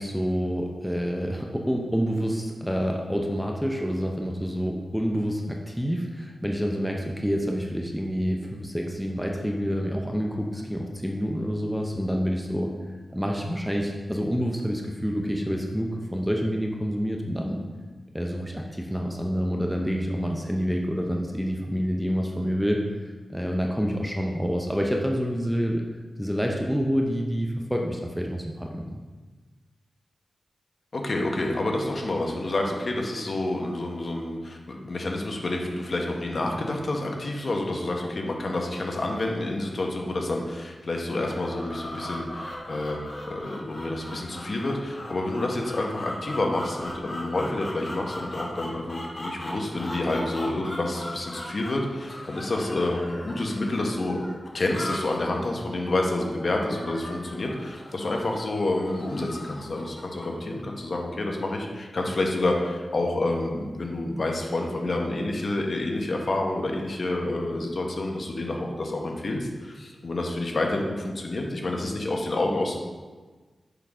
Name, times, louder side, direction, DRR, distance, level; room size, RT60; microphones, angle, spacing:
voice 1, 0.0-12.8 13.1-17.6 18.1-25.8 26.2-29.0, equal, ahead, 0 dB, 0.7 m, -28 dB
voice 2, 30.9-43.0 43.2-54.2 54.5-72.8, left 2 dB, 50° left, 1 dB, 1.1 m, -28 dB
sound 1, 41.2-60.4, left 1 dB, 35° left, 1.9 m, -39 dB
6.8 x 3.9 x 4.9 m, 1.4 s
wide cardioid pair, 80°, 0 cm